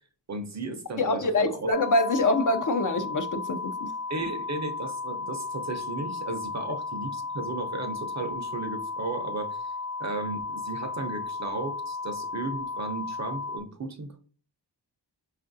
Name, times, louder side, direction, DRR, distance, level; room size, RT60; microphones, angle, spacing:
voice 1, 0.3-1.7 4.1-9.7 10.0-14.2, right 3 dB, 40° right, 0.6 m, -35 dB
voice 2, 1.0-3.9, left 2 dB, 45° left, 0.5 m, -25 dB
sound 1, 1.7-13.6, left 4 dB, 90° left, 0.8 m, -34 dB
5.2 x 2.4 x 2.6 m
wide cardioid pair, 95°, 44 cm